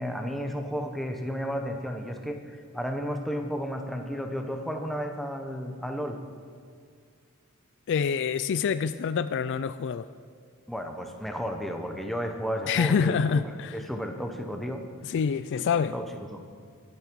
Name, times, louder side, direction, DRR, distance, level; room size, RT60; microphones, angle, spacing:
voice 1, 0.0-6.2 10.7-14.8 15.9-16.0 16.3-16.4, equal, ahead, 4 dB, 1.0 m, -33 dB
voice 2, 7.9-10.0 12.7-13.8 15.0-16.0, left 6 dB, 55° left, 13 dB, 0.3 m, -26 dB
21.5 x 8.7 x 4.7 m, 2.2 s
head